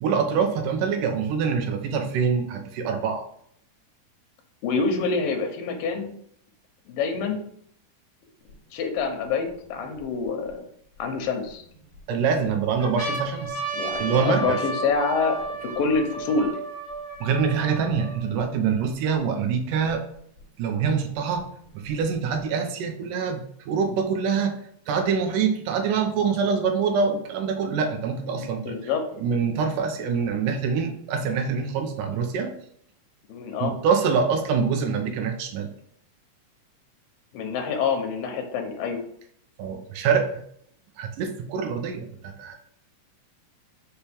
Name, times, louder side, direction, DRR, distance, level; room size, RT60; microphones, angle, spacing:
voice 1, 0.0-3.3 12.1-13.6 14.0-14.6 17.2-20.0 20.6-21.4 21.7-24.6 24.9-28.7 29.1-32.5 33.6-35.7 39.6-40.3 41.0-42.6, right 6 dB, 75° right, 5 dB, 2.4 m, -25 dB
voice 2, 4.6-6.1 6.9-7.5 8.7-10.6 11.0-11.6 13.7-16.5 28.3-29.0 33.3-33.7 37.3-39.0, left 4 dB, 85° left, 5 dB, 2.6 m, -26 dB
sound 1, 8.5-8.6 9.2-10.5 11.2-12.0 12.4-12.5 12.8-18.4 19.1-19.2 19.4-20.4 21.4-22.4, right 3 dB, 25° right, 2.6 m, -33 dB
5.8 x 5.0 x 3.5 m, 0.67 s
omnidirectional pair, 3.9 m